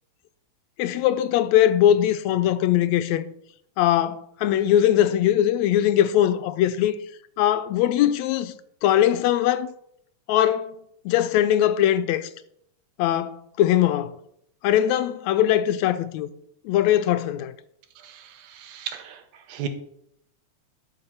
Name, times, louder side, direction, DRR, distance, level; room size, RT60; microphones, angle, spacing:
voice 1, 0.8-3.3 3.8-7.0 7.4-8.5 8.8-9.7 10.3-10.7 11.1-12.3 13.0-14.1 14.6-16.3 16.7-17.5, left 11 dB, 80° left, 1.8 m, -21 dB
voice 2, 18.6-19.2 19.5-19.7, right 8 dB, 85° right, 2.4 m, -33 dB
12.0 x 4.9 x 5.6 m
omnidirectional pair, 3.3 m